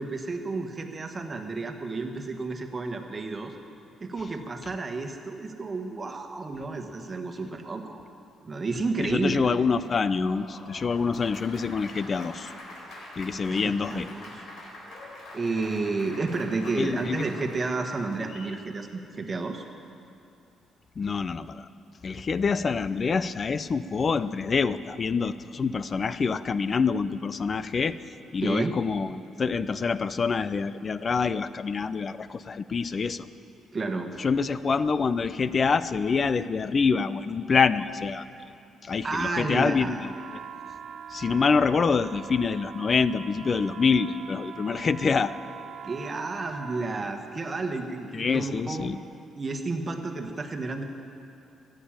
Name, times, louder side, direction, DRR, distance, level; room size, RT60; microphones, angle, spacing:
voice 1, 0.0-3.5 4.0-8.0 8.4-9.4 13.5-14.4 15.3-19.6 28.4-28.7 33.7-34.1 39.0-40.0 45.8-48.9 49.3-50.8, right 3 dB, 30° right, 4 dB, 1.4 m, -31 dB
voice 2, 9.0-12.5 13.2-14.1 16.8-17.2 21.0-21.7 22.0-28.0 28.3-33.3 34.2-38.3 38.8-40.1 41.1-45.4 48.1-49.0, left 5 dB, 40° left, 15 dB, 0.5 m, -26 dB
Applause, 9.8-18.6, left 1 dB, 70° left, 3.9 m, -45 dB
sound 1, 39.9-47.1, right 7 dB, 65° right, 0.5 m, -42 dB
14.0 x 9.0 x 8.8 m, 2.7 s
cardioid pair, 90°, 0 cm